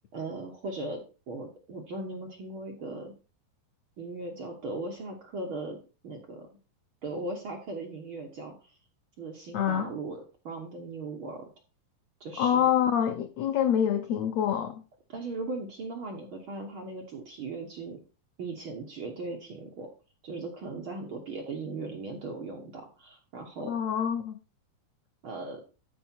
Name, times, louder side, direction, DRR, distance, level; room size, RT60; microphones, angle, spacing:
voice 1, 0.1-3.1 4.0-6.5 7.0-8.7 9.2-11.5 12.2-12.7 15.1-18.0 18.4-19.9 20.2-23.7 25.2-25.6, right 3 dB, 60° right, 1.4 m, -38 dB
voice 2, 9.5-9.8 12.4-14.8 23.7-24.4, left 9 dB, 90° left, 1.5 m, -26 dB
13.0 x 4.7 x 4.5 m
omnidirectional pair, 3.9 m